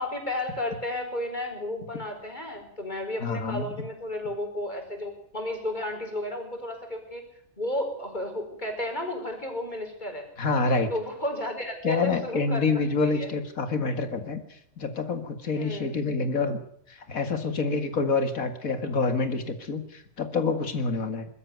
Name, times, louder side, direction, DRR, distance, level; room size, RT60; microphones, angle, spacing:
voice 1, 0.0-7.2 7.6-10.3 10.9-12.8 13.1-13.3 15.5-16.0, left 1 dB, 30° left, 4 dB, 4.9 m, -33 dB
voice 2, 3.2-3.7 10.4-10.9 11.8-16.6 16.9-21.3, left 4 dB, 80° left, 8 dB, 2.5 m, -27 dB
22.0 x 13.5 x 9.4 m, 0.70 s
omnidirectional pair, 1.4 m